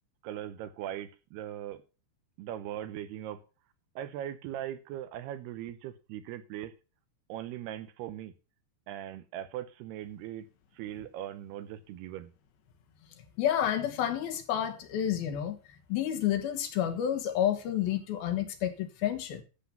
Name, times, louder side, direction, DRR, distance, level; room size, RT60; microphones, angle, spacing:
voice 1, 0.2-1.8 2.4-3.4 4.0-6.7 7.3-8.3 8.9-10.5 10.7-12.3, right 11 dB, 80° right, 2.7 m, -39 dB
voice 2, 13.4-15.6 15.9-19.4, left 10 dB, 70° left, 2.8 m, -30 dB
12.0 x 7.6 x 5.6 m
omnidirectional pair, 4.9 m